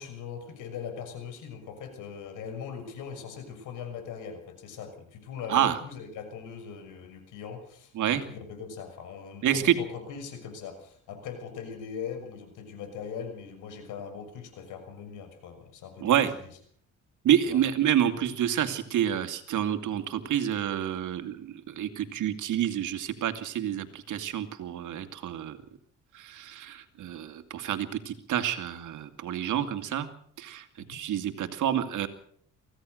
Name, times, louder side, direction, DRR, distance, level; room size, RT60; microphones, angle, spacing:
voice 1, 0.0-16.4 17.4-17.6 30.8-31.0, left 6 dB, 90° left, 7 dB, 6.4 m, -40 dB
voice 2, 9.4-9.8 16.0-16.3 17.2-25.6 26.1-30.1 30.4-32.1, right 10 dB, 75° right, 8 dB, 2.5 m, -28 dB
24.0 x 16.5 x 6.5 m, 0.63 s
cardioid pair, 90°, 30 cm